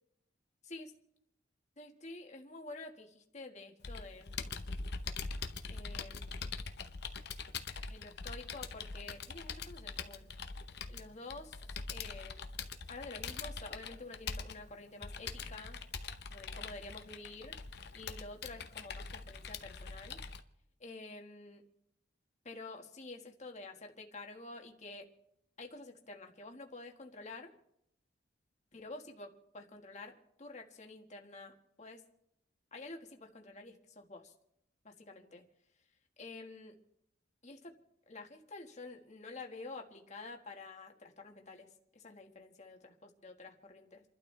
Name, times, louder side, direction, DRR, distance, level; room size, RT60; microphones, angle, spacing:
voice 1, 1.8-4.6 5.7-6.5 7.9-10.3 10.9-11.6 11.9-12.4 12.9-15.8 16.3-17.5 17.9-20.2 20.8-21.6 22.4-25.1 25.6-27.5 28.7-32.0 32.7-34.3 34.8-35.4 36.2-36.8 37.4-37.7 38.1-41.7 41.9-44.0, left 3 dB, 40° left, 2 dB, 1.6 m, -49 dB
Computer keyboard, 3.8-20.4, left 4 dB, 60° left, 0.9 m, -43 dB
29.5 x 12.0 x 3.3 m, 0.77 s
head